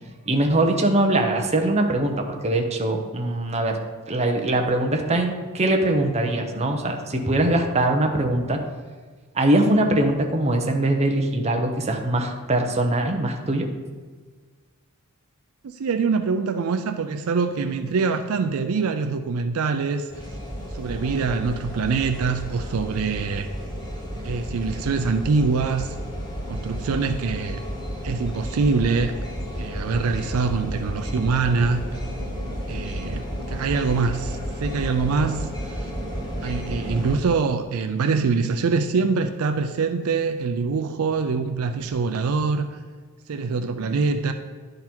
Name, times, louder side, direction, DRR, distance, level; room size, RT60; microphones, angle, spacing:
voice 1, 0.3-3.8 4.1-8.6 9.3-13.7, right 1 dB, 30° right, 3 dB, 0.8 m, -22 dB
voice 2, 15.6-20.1 20.7-23.5 24.2-25.9 26.5-27.6 28.0-29.1 29.6-31.8 32.7-35.9 36.4-42.7 43.3-44.3, right 4 dB, 70° right, 7 dB, 0.4 m, -24 dB
sound 1, 20.1-37.2, equal, 20° left, 1.1 m, -32 dB
10.5 x 3.9 x 4.4 m, 1.5 s
head